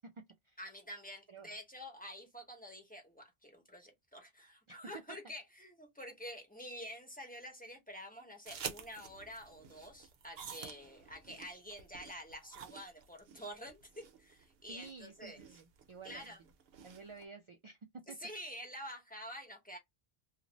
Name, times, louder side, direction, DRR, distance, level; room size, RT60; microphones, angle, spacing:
voice 1, 0.6-15.4 16.0-16.4 18.1-19.8, equal, 10° left, 0.9 m, -48 dB
sound 1, 8.5-17.2, right 7 dB, 75° right, 0.8 m, -50 dB
voice 2, 14.7-16.4 16.8-17.8 18.1-18.2, right 4 dB, 55° right, 0.3 m, -52 dB
2.5 x 2.4 x 3.0 m
omnidirectional pair, 1.0 m